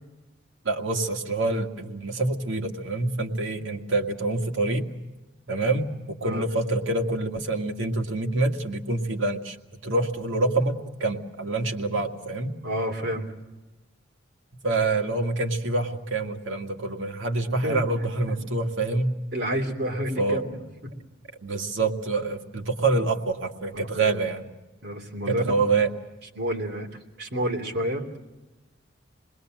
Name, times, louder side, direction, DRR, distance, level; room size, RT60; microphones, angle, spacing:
voice 1, 0.7-4.9 5.5-5.9 6.2-9.6 9.8-12.5 14.6-19.1 20.2-20.6 21.4-24.5 25.3-25.9, right 2 dB, 85° right, 3 dB, 2.0 m, -26 dB
voice 2, 12.6-13.3 17.6-17.8 19.3-20.5 20.8-20.9 23.7-24.2 24.8-25.4 26.3-26.9 27.2-28.1, equal, 55° right, 1 dB, 3.1 m, -29 dB
27.5 x 20.5 x 7.7 m, 1.1 s
head